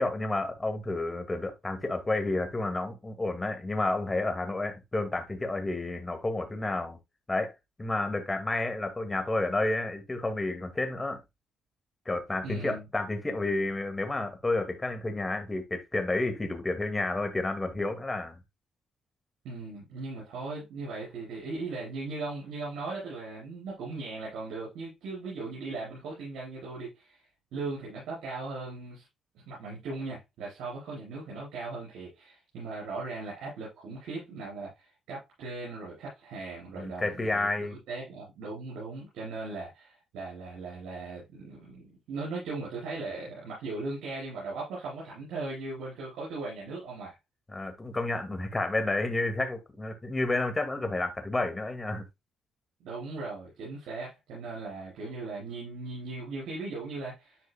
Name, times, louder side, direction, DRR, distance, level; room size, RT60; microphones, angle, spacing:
voice 1, 0.0-7.0 7.3-7.5 7.8-11.2 12.1-18.4 36.8-37.8 47.5-52.0, left 2 dB, 20° left, 1.9 m, -30 dB
voice 2, 12.4-12.8 19.4-29.1 29.3-47.1 52.8-57.4, right 3 dB, 85° right, 4.2 m, -38 dB
10.5 x 4.6 x 2.2 m
cardioid pair, 90°, 0 cm